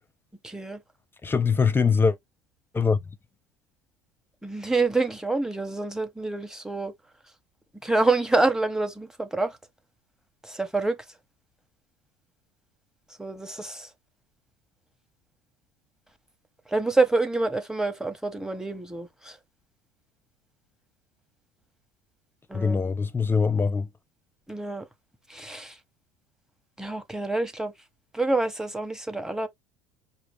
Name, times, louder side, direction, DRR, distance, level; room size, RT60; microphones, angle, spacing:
voice 1, 0.4-0.8 4.4-6.9 7.8-9.6 10.4-11.0 13.2-13.9 16.7-19.4 22.5-22.8 24.5-24.8 25.3-25.8 26.8-27.7 28.1-29.5, right 3 dB, 5° right, 1.0 m, -27 dB
voice 2, 1.2-2.2 2.7-3.0 22.5-23.9, left 5 dB, 20° left, 0.6 m, -22 dB
5.0 x 2.5 x 3.2 m
hypercardioid pair, 80°, 11 cm